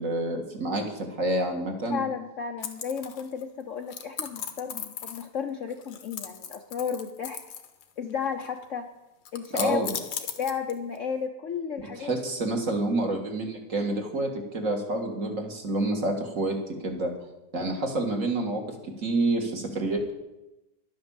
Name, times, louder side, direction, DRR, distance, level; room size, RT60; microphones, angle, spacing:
voice 1, 0.0-2.0 9.5-9.9 12.0-16.6 16.8-17.1 17.5-18.6 19.0-20.1, right 2 dB, 45° right, 2 dB, 2.0 m, -28 dB
voice 2, 1.9-7.4 8.0-8.9 9.3-9.8 10.3-12.2, left 6 dB, 55° left, 5 dB, 0.9 m, -33 dB
sound 1, 2.6-3.4 3.9-5.4 5.7-7.8 8.1-8.7 9.3-11.0, left 8 dB, 80° left, 1.7 m, -37 dB
11.5 x 8.7 x 7.1 m, 0.98 s
omnidirectional pair, 2.0 m